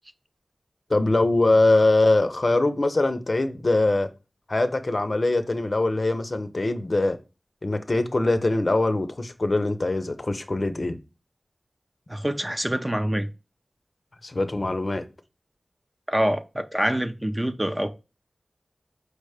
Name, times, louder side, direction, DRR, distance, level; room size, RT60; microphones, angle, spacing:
voice 1, 0.9-4.1 4.5-7.2 7.6-11.0 14.2-15.0, left 2 dB, 50° left, 0.5 m, -22 dB
voice 2, 12.1-13.3 16.1-17.9, right 1 dB, 15° right, 0.5 m, -25 dB
4.9 x 2.2 x 4.8 m
cardioid pair, 45°, 0 cm